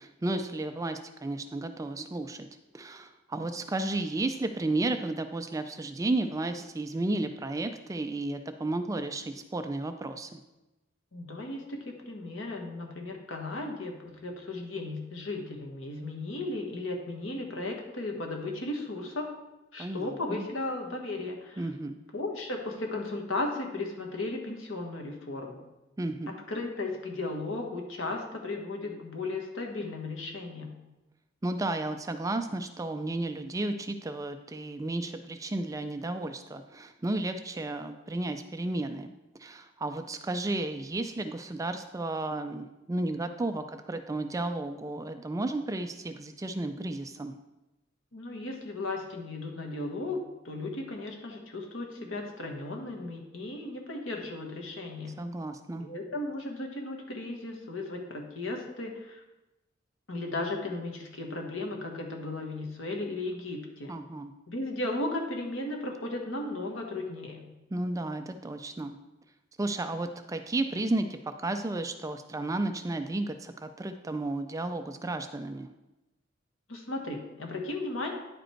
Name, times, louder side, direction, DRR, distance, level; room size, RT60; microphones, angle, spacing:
voice 1, 0.0-2.5 2.7-10.4 19.8-20.5 21.6-22.0 26.0-26.3 31.4-39.1 39.4-47.3 55.2-55.9 63.9-64.3 67.7-68.9 69.6-75.7, right 2 dB, 15° right, 8 dB, 0.4 m, -33 dB
voice 2, 11.1-19.3 19.7-21.7 22.1-25.6 26.5-30.7 48.1-50.2 50.4-55.2 55.8-59.2 60.1-63.9 64.5-67.5 76.7-78.1, left 2 dB, 90° left, 2 dB, 1.5 m, -35 dB
9.9 x 5.2 x 4.5 m, 1.0 s
head